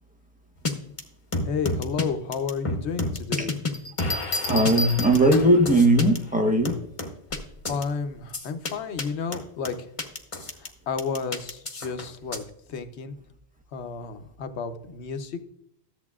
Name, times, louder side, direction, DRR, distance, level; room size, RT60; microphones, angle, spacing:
sound 1, 0.6-0.7 1.0-1.1 1.3-2.0 2.3-3.7 4.0-6.2 6.6-7.4 7.6-7.8 8.3-8.7 9.0-9.1 9.3-10.7 11.0-12.4, left 2 dB, 30° left, 1.0 m, -30 dB
voice 1, 1.5-3.5 7.7-9.9 10.5-12.4 12.7-13.2 13.7-15.4, left 5 dB, 80° left, 8 dB, 1.1 m, -32 dB
Bell, 3.7-5.7 7.3-7.6, left 1 dB, 55° left, 0.9 m, -32 dB
voice 2, 4.4-6.8, right 1 dB, 10° right, 3 dB, 0.9 m, -19 dB
13.5 x 7.7 x 2.4 m, 0.74 s
omnidirectional pair, 1.1 m